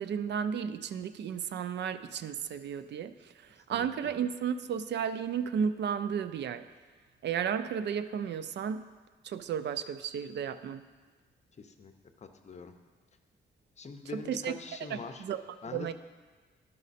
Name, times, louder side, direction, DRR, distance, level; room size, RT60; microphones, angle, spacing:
voice 1, 0.0-3.1 3.7-6.7 7.2-8.8 9.2-10.8 14.1-14.6 14.9-15.9, right 7 dB, 70° right, 12 dB, 0.4 m, -33 dB
voice 2, 11.6-11.9 12.2-12.7 13.8-15.2 15.6-15.9, left 5 dB, 35° left, 6 dB, 0.6 m, -43 dB
12.0 x 5.3 x 4.1 m, 1.4 s
wide cardioid pair, 130°, 19 cm